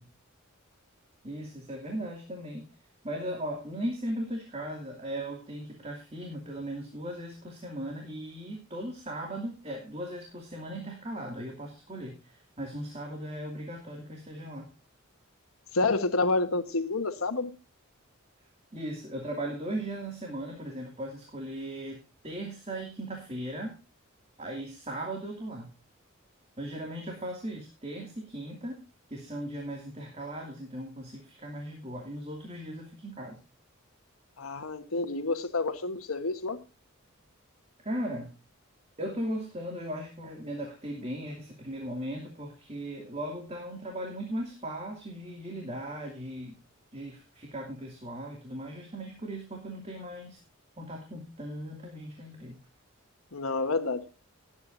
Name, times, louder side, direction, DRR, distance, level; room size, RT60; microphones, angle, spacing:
voice 1, 1.2-2.7 3.0-14.7 18.7-23.8 24.4-25.7 26.6-28.8 29.1-33.4 37.8-38.3 39.0-46.6 46.9-50.4 50.8-52.6, right 1 dB, 30° right, 1 dB, 2.6 m, -38 dB
voice 2, 15.7-17.5 34.4-36.6 53.3-54.0, left 3 dB, 90° left, 8 dB, 1.3 m, -29 dB
18.5 x 8.9 x 2.7 m, 0.30 s
head